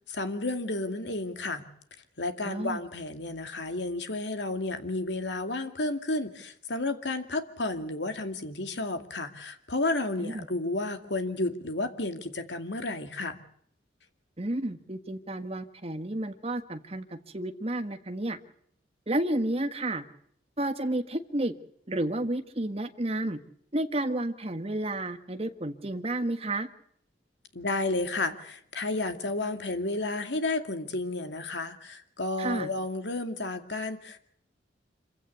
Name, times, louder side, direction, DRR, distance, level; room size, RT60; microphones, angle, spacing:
voice 1, 0.1-1.7 2.2-13.4 27.5-34.2, left 2 dB, 75° left, 7 dB, 2.4 m, -32 dB
voice 2, 2.4-2.8 10.2-10.5 14.4-18.4 19.1-20.0 20.6-21.5 21.9-23.4 23.7-26.7 32.4-32.7, right 1 dB, 35° right, 8 dB, 1.6 m, -31 dB
26.5 x 16.0 x 8.4 m, 0.67 s
head